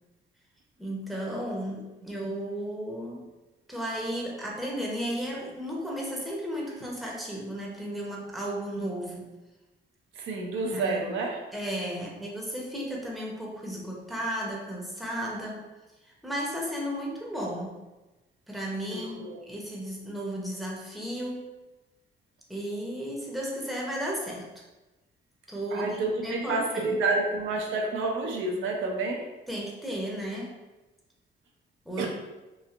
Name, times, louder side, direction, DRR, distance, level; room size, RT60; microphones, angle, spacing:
voice 1, 0.8-3.3 3.7-9.3 10.7-11.0 11.5-15.6 16.2-17.8 18.5-21.5 22.5-24.5 25.5-26.9 29.5-30.6 31.9-32.1, equal, ahead, -3 dB, 0.7 m, -34 dB
voice 2, 10.2-11.4 18.9-19.4 25.7-29.3 32.0-32.1, right 3 dB, 80° right, 1 dB, 0.5 m, -29 dB
3.0 x 2.4 x 2.4 m, 1.1 s
cardioid pair, 90°, 20 cm